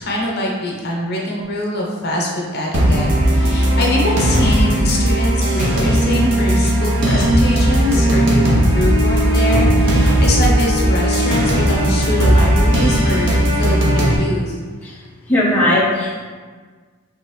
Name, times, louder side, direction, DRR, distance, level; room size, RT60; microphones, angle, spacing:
voice 1, 0.0-13.3 13.6-14.6, equal, 50° left, -2 dB, 0.8 m, -23 dB
sound 1, 2.7-14.2, equal, 60° right, 0.8 m, -16 dB
voice 2, 15.3-16.2, left 1 dB, 5° left, -8 dB, 0.7 m, -17 dB
4.9 x 3.4 x 3.1 m, 1.5 s
head